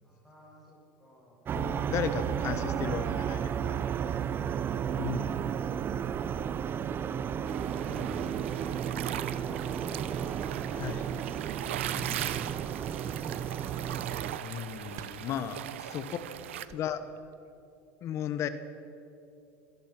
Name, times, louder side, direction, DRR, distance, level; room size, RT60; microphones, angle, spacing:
voice 1, 0.0-1.6 4.0-5.7 6.1-6.5 15.7-16.1 16.5-17.1, equal, ahead, -8 dB, 7.1 m, -58 dB
voice 2, 1.5-3.8 5.0-5.4 7.9-8.4 10.7-11.1 12.0-12.4 14.4-16.2 16.7-17.0 18.0-18.5, left 9 dB, 45° left, 11 dB, 1.3 m, -35 dB
sound 1, 1.5-14.4, right 8 dB, 35° right, 0.7 m, -33 dB
sound 2, 7.5-16.6, right 12 dB, 90° right, 0.8 m, -39 dB
sound 3, 12.3-17.6, right 9 dB, 55° right, 1.4 m, -57 dB
26.5 x 18.0 x 6.1 m, 2.8 s
supercardioid pair, 105°, 6 cm